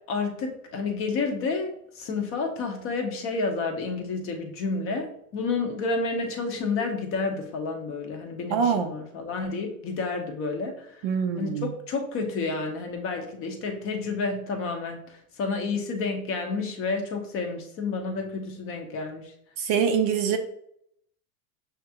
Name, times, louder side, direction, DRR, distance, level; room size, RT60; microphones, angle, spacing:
voice 1, 0.1-11.1 11.4-19.3, left 4 dB, 30° left, 4 dB, 0.6 m, -30 dB
voice 2, 8.5-8.9 11.0-11.7 19.6-20.4, right 7 dB, 45° right, 6 dB, 0.5 m, -24 dB
6.5 x 2.3 x 2.7 m, 0.70 s
supercardioid pair, 125°, 46 cm